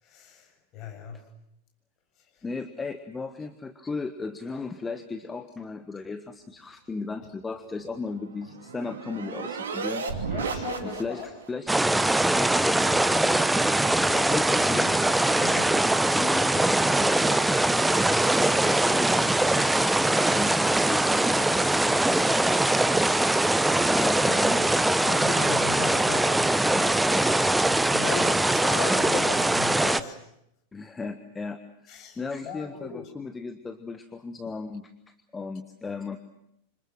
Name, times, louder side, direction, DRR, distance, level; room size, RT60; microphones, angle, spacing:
voice 1, 0.0-1.2 10.2-11.3 15.4-15.9 25.0-30.2 31.9-33.0, left 7 dB, 35° left, 4 dB, 7.1 m, -37 dB
voice 2, 2.4-10.0 10.8-11.7 12.4-15.0 16.2-16.6 16.9-17.4 18.2-22.6 23.9-25.0 27.1-27.3 30.7-36.2, left 4 dB, 15° left, 8 dB, 1.3 m, -36 dB
sound 1, 7.9-11.5, right 5 dB, 65° right, 2.8 m, -34 dB
sound 2, 11.7-30.0, right 2 dB, 5° right, 0.9 m, -22 dB
28.0 x 26.0 x 6.1 m, 0.79 s
figure-of-eight pair, 90°, 0 cm